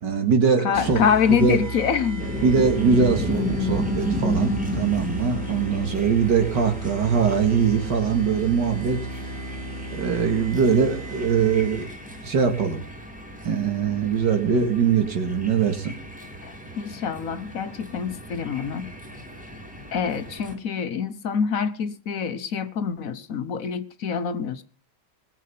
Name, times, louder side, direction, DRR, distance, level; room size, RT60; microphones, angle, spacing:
voice 1, 0.0-1.0 1.3-1.6 2.4-9.0 9.9-11.9 12.2-12.8 13.4-15.9, right 6 dB, 90° right, 2.7 m, -22 dB
voice 2, 0.6-2.3 16.4-18.9 19.9-24.6, left 7 dB, 60° left, 1.2 m, -25 dB
sound 1, 0.7-12.1, right 1 dB, 30° left, 5.3 m, -35 dB
sound 2, 2.2-20.6, equal, 5° right, 2.0 m, -33 dB
20.5 x 7.5 x 5.6 m
omnidirectional pair, 1.8 m